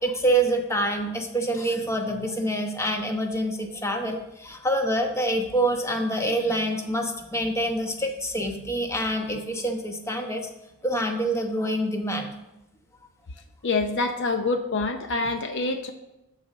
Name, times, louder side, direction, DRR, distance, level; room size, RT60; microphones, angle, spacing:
voice 1, 0.0-10.4 10.8-12.3, right 1 dB, 15° left, 3 dB, 1.0 m, -26 dB
voice 2, 13.6-15.9, left 3 dB, 55° left, 7 dB, 0.7 m, -26 dB
12.5 x 4.2 x 6.2 m, 0.93 s
head